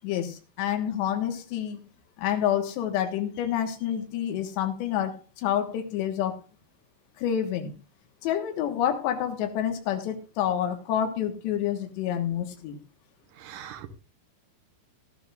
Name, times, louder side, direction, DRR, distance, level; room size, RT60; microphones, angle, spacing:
voice 1, 0.0-1.8 2.2-6.4 7.2-7.7 8.2-12.8, left 10 dB, 80° left, 4 dB, 3.7 m, -28 dB
voice 2, 13.4-14.0, right 9 dB, 75° right, 8 dB, 2.0 m, -41 dB
18.0 x 12.0 x 2.5 m, 0.31 s
omnidirectional pair, 5.1 m